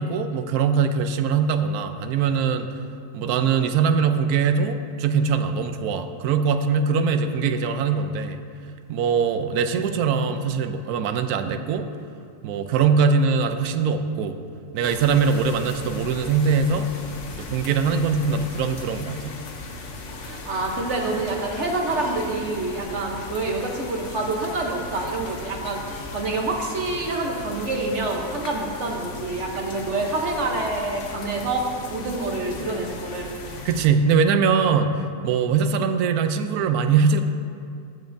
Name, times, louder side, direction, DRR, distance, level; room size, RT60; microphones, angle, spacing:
voice 1, 0.0-2.7 3.1-8.4 8.9-11.9 12.4-14.4 14.7-16.9 17.4-19.4 33.6-37.2, right 5 dB, 75° right, 8 dB, 1.0 m, -22 dB
sound 1, 14.8-33.9, left 3 dB, 55° left, 1.0 m, -37 dB
voice 2, 20.1-31.6 31.9-33.3, right 2 dB, 50° right, 1 dB, 1.1 m, -27 dB
13.5 x 7.2 x 2.6 m, 2.4 s
omnidirectional pair, 1.7 m